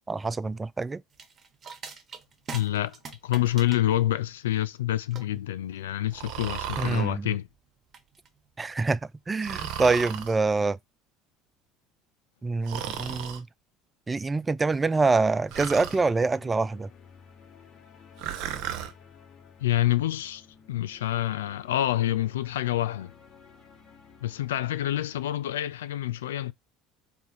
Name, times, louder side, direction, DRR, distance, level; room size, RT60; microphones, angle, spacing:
voice 1, 0.1-1.0 6.8-7.3 8.6-9.0 9.3-10.8 12.4-13.5 14.1-16.9, right 3 dB, 20° right, 0.3 m, -25 dB
sound 1, 1.1-10.2, right 5 dB, 40° right, 0.9 m, -46 dB
voice 2, 2.5-2.9 3.2-7.5 19.6-20.4 20.7-23.1 24.2-26.5, left 13 dB, 80° left, 0.3 m, -27 dB
Breathing, 6.1-7.1 9.4-10.4 12.7-13.4 15.5-16.0 18.2-18.9, right 9 dB, 60° right, 0.7 m, -34 dB
sound 2, 14.6-25.3, left 6 dB, 45° left, 1.6 m, -54 dB
3.4 x 2.9 x 4.2 m
hypercardioid pair, 65°, 0 cm